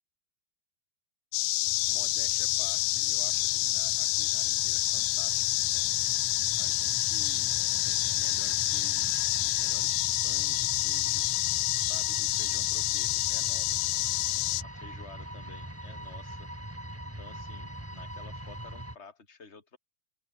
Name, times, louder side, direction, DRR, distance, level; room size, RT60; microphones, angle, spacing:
sound 1, 1.3-14.6, left 19 dB, 85° left, 2.8 m, -28 dB
sound 2, 1.6-19.0, right 1 dB, 5° right, 1.2 m, -43 dB
voice 1, 1.8-5.8 6.6-7.6 7.8-11.3 11.8-13.9 14.6-16.5 17.0-19.8, left 4 dB, 15° left, 3.9 m, -51 dB
open air
omnidirectional pair, 5.1 m